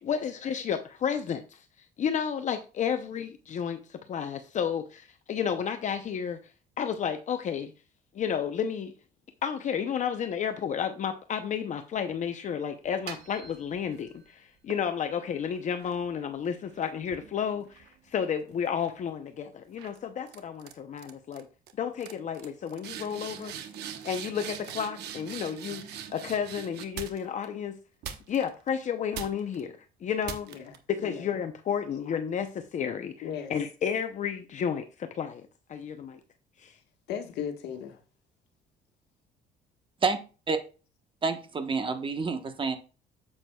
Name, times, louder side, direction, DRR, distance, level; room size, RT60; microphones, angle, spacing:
voice 1, 0.0-6.4 6.8-7.7 8.1-8.9 9.4-21.5 21.8-23.5 24.0-27.8 28.3-30.5 30.9-36.2 36.6-36.7, left 7 dB, 45° left, 0.7 m, -32 dB
sound 1, 12.8-14.1 14.7-18.3 18.6-19.0 19.8-20.0 20.3-20.7 21.0-21.4 21.7-21.8 22.0-27.5 28.0-28.7 29.1-29.6 30.2-30.8, right 9 dB, 75° right, 1.1 m, -42 dB
voice 2, 30.5-31.3 33.2-33.6 37.1-38.0, left 8 dB, 80° left, 1.5 m, -37 dB
voice 3, 41.2-42.8, right 4 dB, 30° right, 1.1 m, -28 dB
9.6 x 7.8 x 2.3 m
cardioid pair, 110°, 17 cm